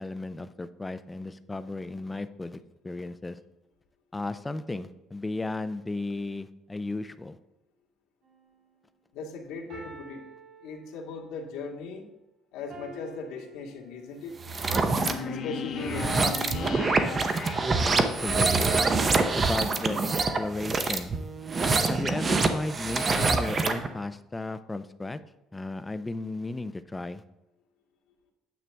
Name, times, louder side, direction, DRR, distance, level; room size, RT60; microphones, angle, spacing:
voice 1, 0.0-3.4 4.1-7.4 17.9-18.8 19.0-20.1 20.4-21.1 21.9-25.2 25.5-27.2, left 2 dB, 10° left, 12 dB, 0.4 m, -35 dB
sound 1, 8.2-8.6 9.7-11.3 12.7-14.3 15.8-17.4 18.7-21.1, right 1 dB, 60° right, 2.9 m, -47 dB
voice 2, 9.1-10.2 10.6-12.1 12.5-14.4 15.2-17.2, left 4 dB, 90° left, 0 dB, 1.8 m, -39 dB
sound 2, 14.4-15.1 15.8-23.9, right 3 dB, 25° right, 0.8 m, -25 dB
sound 3, 15.0-18.3, left 5 dB, 45° left, 0.9 m, -37 dB
9.3 x 7.4 x 3.4 m, 0.95 s
cardioid pair, 145°, 0 cm